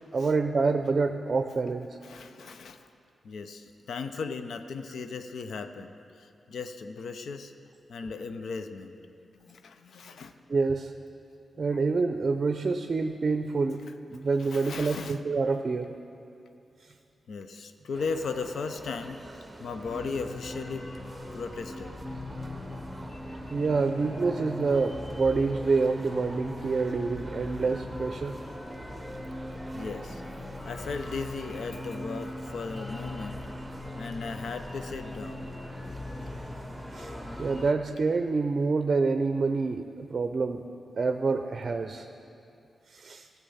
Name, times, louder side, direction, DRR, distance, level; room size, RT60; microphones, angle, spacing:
voice 1, 0.1-2.0 10.5-10.9 11.6-13.8 14.1-16.0 16.8-16.9 23.5-28.4 34.8-34.9 36.9-40.6 40.9-42.1 42.9-43.3, right 4 dB, 50° right, 7 dB, 0.5 m, -27 dB
voice 2, 2.0-2.9 3.2-7.5 7.9-10.3 11.5-11.8 14.4-15.2 17.3-19.2 19.6-20.9 21.3-22.0 29.7-33.4 34.0-35.4, left 4 dB, 75° left, 9 dB, 0.6 m, -37 dB
sound 1, 17.9-37.7, right 1 dB, 20° right, 0.9 m, -45 dB
sound 2, 19.8-37.7, left 2 dB, 35° left, 1.0 m, -40 dB
15.0 x 7.4 x 5.6 m, 2.6 s
cardioid pair, 55°, 0 cm